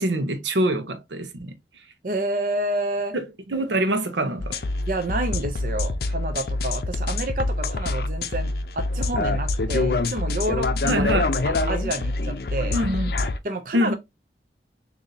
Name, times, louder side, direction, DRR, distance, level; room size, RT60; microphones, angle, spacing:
voice 1, 0.0-1.5 3.1-3.2 3.5-4.6 10.8-11.3 12.7-13.1 13.7-14.0, right 1 dB, 85° right, 0.8 m, -24 dB
voice 2, 2.0-3.2 4.9-11.1 11.4-12.8 13.4-13.9, right 2 dB, 50° right, 0.5 m, -29 dB
sound 1, 4.4-13.4, left 2 dB, 55° left, 0.5 m, -25 dB
6.7 x 2.7 x 2.7 m
head